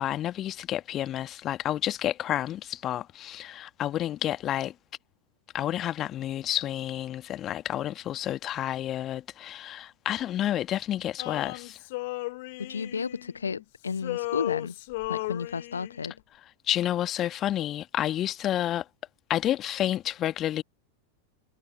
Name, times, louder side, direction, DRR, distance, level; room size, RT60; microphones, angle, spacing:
voice 1, 0.0-4.7 5.5-11.8 16.7-18.8 19.3-20.6, left 12 dB, 30° left, 1.7 m, -30 dB
Male singing, 11.2-13.6 13.9-16.1, left 22 dB, 50° left, 1.3 m, -35 dB
voice 2, 12.6-14.7 15.1-16.1, left 5 dB, 75° left, 1.0 m, -32 dB
figure-of-eight pair, 90°, 0 cm